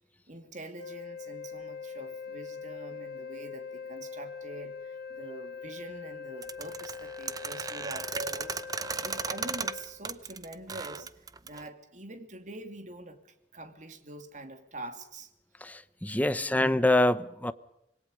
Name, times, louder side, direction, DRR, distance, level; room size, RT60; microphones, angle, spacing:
voice 1, 0.3-15.3 16.3-16.6, right 2 dB, 45° right, 2.6 m, -45 dB
Wind instrument woodwind instrument, 0.8-9.9, left 5 dB, 60° left, 4.1 m, -42 dB
sound 1, 6.4-11.7, right 5 dB, 20° right, 0.8 m, -36 dB
voice 2, 15.6-17.5, left 1 dB, 10° left, 0.8 m, -25 dB
26.5 x 20.5 x 5.2 m
head